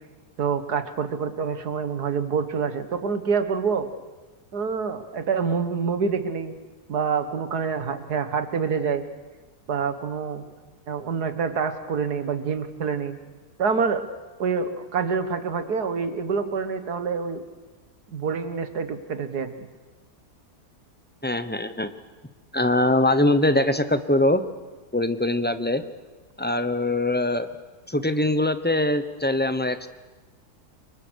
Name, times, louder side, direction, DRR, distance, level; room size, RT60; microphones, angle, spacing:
voice 1, 0.4-3.9 4.5-6.5 6.9-9.0 9.7-10.4 10.9-13.2 13.6-14.0 14.4-17.4 18.1-19.5, right 5 dB, 75° right, 10 dB, 2.1 m, -26 dB
voice 2, 21.2-21.9 22.5-24.4 24.9-25.8 26.4-27.5 27.9-29.9, left 1 dB, 10° left, 11 dB, 0.7 m, -22 dB
28.5 x 24.0 x 6.4 m, 1.3 s
omnidirectional pair, 1.7 m